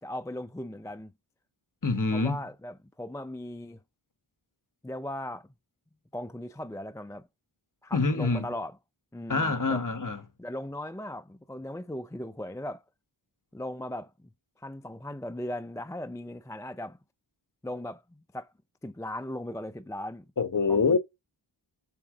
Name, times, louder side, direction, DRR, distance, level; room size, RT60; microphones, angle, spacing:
voice 1, 0.0-1.1 2.1-3.8 4.8-5.5 6.1-7.3 7.8-8.8 9.1-9.8 10.4-12.8 13.5-14.3 14.6-17.0 17.6-18.5 18.8-20.3 20.7-21.0, left 1 dB, 5° left, 0.4 m, -38 dB
voice 2, 1.8-2.4 7.9-8.5 9.3-10.2 20.4-21.0, left 4 dB, 40° left, 1.3 m, -25 dB
7.0 x 3.8 x 4.9 m
cardioid pair, 50°, 49 cm